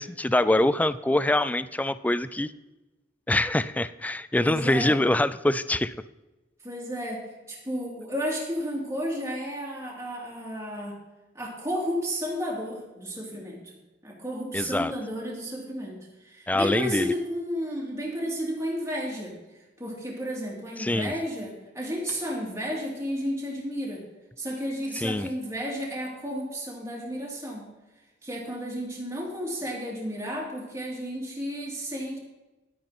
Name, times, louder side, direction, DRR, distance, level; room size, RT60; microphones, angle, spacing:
voice 1, 0.0-2.5 3.3-5.9 14.5-14.9 16.5-17.1 20.8-21.1 25.0-25.3, left 1 dB, 10° left, 15 dB, 0.4 m, -24 dB
voice 2, 4.4-5.0 6.6-11.0 11.3-13.7 14.0-19.3 19.8-24.0 24.4-27.7 28.2-32.2, equal, 15° right, -3 dB, 3.1 m, -32 dB
12.0 x 9.7 x 4.3 m, 1.1 s
head